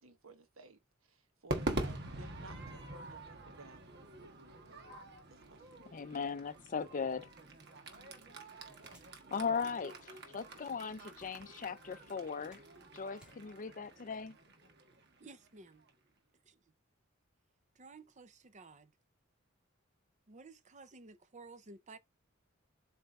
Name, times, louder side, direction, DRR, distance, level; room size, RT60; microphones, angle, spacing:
voice 1, 0.0-3.9 4.2-4.7 5.3-5.8, right 2 dB, 85° right, 1.2 m, -57 dB
Crowd / Fireworks, 1.5-15.9, right 2 dB, 55° right, 1.4 m, -45 dB
voice 2, 5.9-7.3 9.3-12.6 12.9-14.4, left 5 dB, 40° left, 0.5 m, -38 dB
sound 1, 7.9-9.2 9.8-9.9 10.6-11.6 12.0-13.4, equal, 5° right, 2.6 m, -63 dB
voice 3, 15.2-15.8 16.4-16.6 17.7-18.9 20.3-22.0, right 3 dB, 35° right, 0.6 m, -54 dB
7.6 x 3.4 x 4.1 m
head